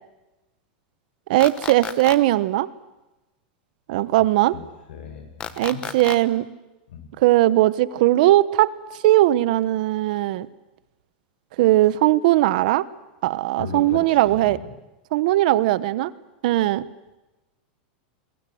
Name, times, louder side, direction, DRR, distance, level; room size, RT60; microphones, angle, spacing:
voice 1, 1.3-2.7 3.9-4.6 5.6-6.5 7.2-8.7 9.0-10.5 11.6-12.8 13.2-14.6 15.1-16.1 16.4-16.8, right 16 dB, 55° right, 17 dB, 1.0 m, -19 dB
sound 1, 1.4-2.2 5.4-6.2, left 8 dB, 20° left, 1.2 m, -32 dB
voice 2, 4.9-5.9 6.9-7.1 13.6-14.7, left 5 dB, 85° left, 6 dB, 6.4 m, -37 dB
28.0 x 22.5 x 7.8 m, 1.0 s
supercardioid pair, 170°, 5 cm